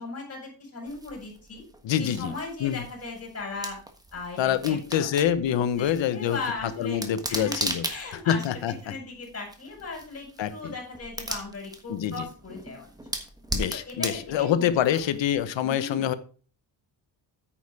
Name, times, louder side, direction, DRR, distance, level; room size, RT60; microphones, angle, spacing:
voice 1, 0.0-1.6 2.0-3.8 4.1-5.1 5.5-7.0 7.3-12.9 13.7-15.0 15.6-16.1, left 3 dB, 30° left, 0 dB, 5.6 m, -38 dB
sound 1, 0.9-15.4, right 1 dB, 10° right, 1.3 m, -38 dB
voice 2, 1.8-2.3 2.6-2.8 4.4-6.4 6.8-7.8 8.1-8.9 10.4-10.7 11.9-12.3 13.5-16.1, left 10 dB, 75° left, 13 dB, 1.0 m, -26 dB
9.2 x 6.7 x 4.8 m, 0.40 s
cardioid pair, 135°, 45 cm